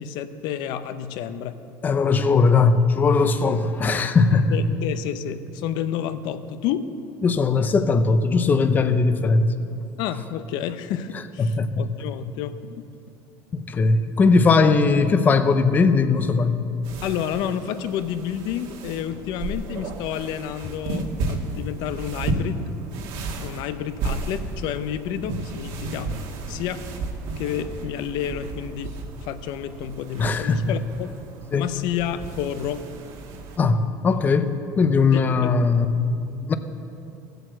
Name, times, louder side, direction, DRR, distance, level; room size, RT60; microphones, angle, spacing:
voice 1, 0.0-1.6 4.5-6.9 10.0-12.9 17.0-22.7 23.4-26.1 26.5-26.9 27.4-31.1 31.5-32.8 35.1-35.5, left 9 dB, 55° left, 12 dB, 0.7 m, -30 dB
voice 2, 1.8-4.6 7.2-9.6 11.4-11.8 13.5-16.6 30.2-30.8 31.5-31.7 33.6-35.9 36.5-36.6, left 4 dB, 20° left, 11 dB, 0.6 m, -19 dB
sound 1, 16.8-33.6, right 2 dB, 60° right, 1.7 m, -33 dB
15.0 x 7.9 x 7.7 m, 2.7 s
cardioid pair, 160°, 9 cm